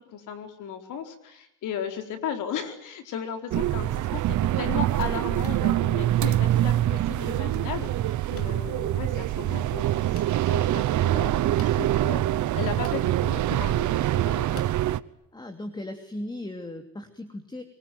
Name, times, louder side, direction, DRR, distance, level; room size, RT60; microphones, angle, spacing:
voice 1, 0.0-14.7, left 7 dB, 85° left, 6 dB, 4.4 m, -36 dB
sound 1, 3.5-15.0, right 13 dB, 75° right, 1.0 m, -25 dB
sound 2, 5.4-5.6 6.9-7.0 8.3-8.5 10.1-10.3 11.5-11.8 12.8-13.0 14.5-14.7, left 5 dB, 50° left, 3.5 m, -46 dB
voice 2, 15.3-17.6, left 1 dB, 15° left, 7 dB, 3.1 m, -37 dB
25.0 x 24.0 x 9.3 m, 0.79 s
cardioid pair, 90°, 30 cm